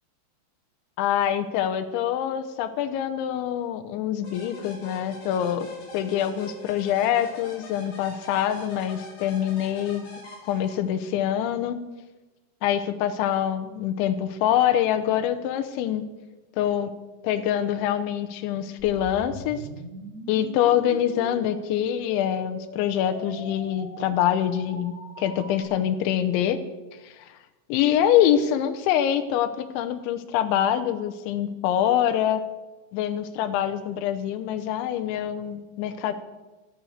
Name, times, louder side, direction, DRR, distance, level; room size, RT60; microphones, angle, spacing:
voice 1, 1.0-5.7 5.9-10.1 10.4-11.8 12.6-16.1 16.6-16.9 17.2-19.6 20.3-26.6 27.0-27.3 27.7-32.4 32.9-36.1, left 10 dB, 75° left, 7 dB, 3.1 m, -25 dB
sound 1, 4.2-11.1, left 1 dB, 40° left, 4.7 m, -44 dB
sound 2, 18.8-25.6, right 1 dB, 25° right, 2.4 m, -41 dB
12.5 x 12.0 x 6.5 m, 1.1 s
omnidirectional pair, 5.7 m